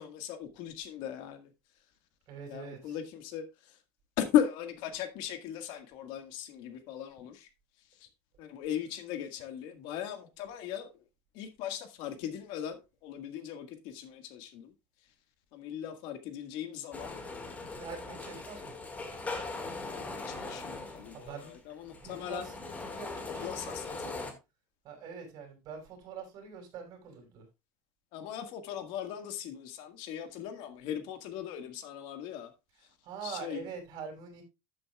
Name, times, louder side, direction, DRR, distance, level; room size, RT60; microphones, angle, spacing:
voice 1, 0.0-1.4 2.5-3.5 4.2-7.3 8.4-10.9 11.4-14.7 15.5-17.2 19.9-21.3 21.8-22.5 23.4-24.3 28.1-32.5 33.2-33.6, left 10 dB, 65° left, 1.7 m, -37 dB
voice 2, 2.3-3.0 17.6-18.8 20.9-21.5 21.8-24.1 24.8-27.5 32.7-34.4, right 6 dB, 50° right, 5.5 m, -45 dB
sound 1, 16.9-24.3, left 3 dB, 15° left, 1.9 m, -40 dB
12.5 x 8.4 x 2.3 m
cardioid pair, 155°, 9 cm